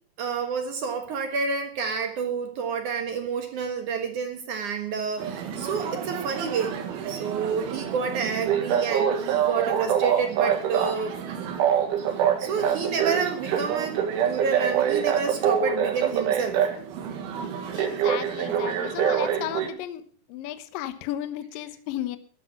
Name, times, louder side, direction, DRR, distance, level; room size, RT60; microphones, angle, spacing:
voice 1, 0.2-6.7 7.1-11.2 12.4-14.0 14.3-16.6, right 5 dB, 65° right, 5 dB, 2.0 m, -29 dB
sound 1, 5.2-19.7, right 8 dB, 85° right, 4.4 m, -26 dB
voice 2, 17.7-20.0 20.3-22.2, left 13 dB, 75° left, 11 dB, 2.1 m, -34 dB
14.0 x 11.0 x 5.9 m, 0.44 s
omnidirectional pair, 5.5 m